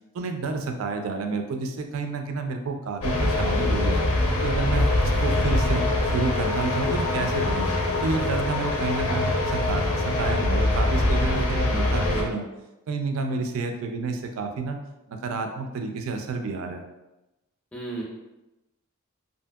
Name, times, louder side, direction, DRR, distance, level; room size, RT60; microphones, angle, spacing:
voice 1, 0.1-4.0 4.4-7.7 8.0-12.4 12.9-14.8 15.1-16.8, right 4 dB, 70° right, 5 dB, 0.3 m, -30 dB
sound 1, 3.0-12.2, left 2 dB, 80° left, 0.5 m, -23 dB
voice 2, 17.7-18.0, right 2 dB, 5° left, -5 dB, 0.5 m, -34 dB
2.7 x 2.6 x 2.2 m, 0.97 s
head